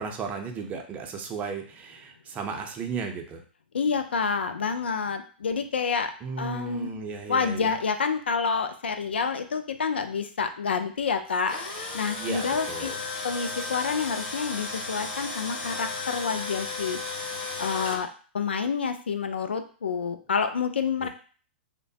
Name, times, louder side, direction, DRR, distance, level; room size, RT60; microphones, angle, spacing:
voice 1, 0.0-3.4 6.2-7.7 12.2-13.0 21.0-21.1, right 5 dB, 25° right, 3 dB, 0.6 m, -35 dB
voice 2, 3.7-6.1 6.4-6.9 7.3-11.6 11.9-12.9 13.2-17.0 17.6-18.1 18.3-21.1, left 5 dB, 90° left, 8 dB, 0.4 m, -28 dB
Tools, 11.3-18.0, left 3 dB, 60° left, 0.8 m, -34 dB
2.9 x 2.1 x 2.7 m, 0.41 s
hypercardioid pair, 120°, 6 cm